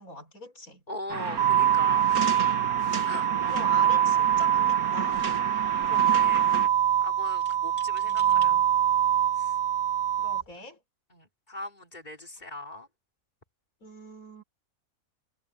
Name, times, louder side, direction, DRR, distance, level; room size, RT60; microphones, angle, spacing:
voice 1, 0.0-0.8 3.0-5.3 8.0-8.6 10.2-10.8 13.8-14.4, left 2 dB, 75° left, 5.0 m, -43 dB
voice 2, 0.9-2.5 3.0-3.3 5.8-6.5 7.0-8.6 9.3-9.6 11.1-12.9, left 1 dB, 30° left, 5.8 m, -39 dB
sound 1, 1.1-6.7, right 5 dB, 90° right, 2.3 m, -34 dB
sound 2, 1.4-10.4, right 10 dB, 65° right, 0.4 m, -24 dB
sound 3, 7.4-8.5 9.2-9.3 10.2-10.6, right 1 dB, 25° right, 7.7 m, -51 dB
omnidirectional pair, 1.5 m